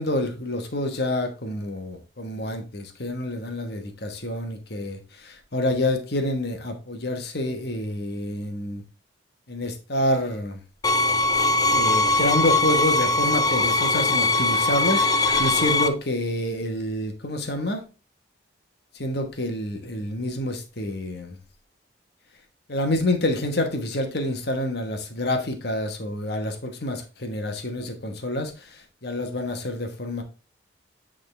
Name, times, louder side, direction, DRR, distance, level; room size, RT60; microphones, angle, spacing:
voice 1, 0.0-8.8 9.5-10.6 11.7-17.8 18.9-21.4 22.7-30.2, left 1 dB, 60° left, 1.2 m, -28 dB
sound 1, 10.8-15.9, left 2 dB, 20° left, 0.3 m, -21 dB
8.7 x 3.8 x 3.3 m
head